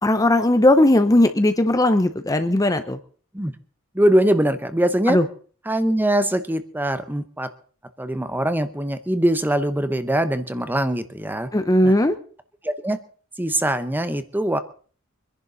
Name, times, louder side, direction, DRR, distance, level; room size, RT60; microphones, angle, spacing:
voice 1, 0.0-3.0 5.1-5.2 11.5-12.2, left 1 dB, 15° left, 10 dB, 0.7 m, -17 dB
voice 2, 3.9-5.2 5.6-7.5 8.0-11.5 11.8-11.9 12.6-13.0 13.4-14.6, right 1 dB, 10° right, 11 dB, 0.9 m, -22 dB
24.5 x 11.0 x 4.0 m, 0.43 s
head